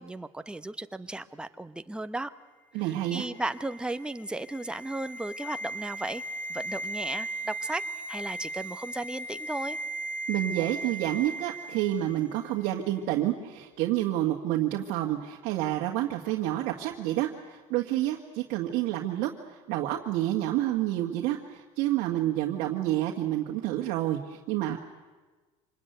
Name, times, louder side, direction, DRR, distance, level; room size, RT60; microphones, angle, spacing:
voice 1, 0.0-2.3 2.8-6.2 6.5-7.8 8.1-9.8, right 2 dB, 5° right, 10 dB, 1.0 m, -35 dB
voice 2, 2.7-3.2 10.3-24.8, right 13 dB, 65° right, 0 dB, 1.8 m, -29 dB
sound 1, 3.0-12.2 12.5-12.6, right 2 dB, 60° left, 5.8 m, -37 dB
26.0 x 20.5 x 9.4 m, 1.3 s
supercardioid pair, 120°, 16 cm